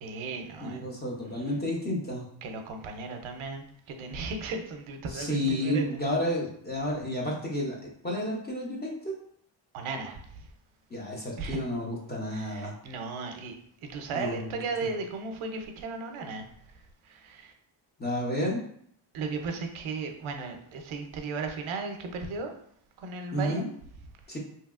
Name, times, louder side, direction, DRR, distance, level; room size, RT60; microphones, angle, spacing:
voice 1, 0.0-0.8 2.4-5.8 9.7-10.5 11.4-11.6 12.3-13.6 13.8-16.5 17.0-17.5 19.1-22.5 23.0-23.7, right 4 dB, 75° right, 5 dB, 0.6 m, -36 dB
voice 2, 0.6-2.3 5.1-9.2 10.9-12.7 14.1-14.6 18.0-18.6 23.3-23.7 24.3-24.4, equal, 20° left, -3 dB, 0.6 m, -31 dB
2.8 x 2.8 x 2.4 m, 0.65 s
cardioid pair, 135°, 49 cm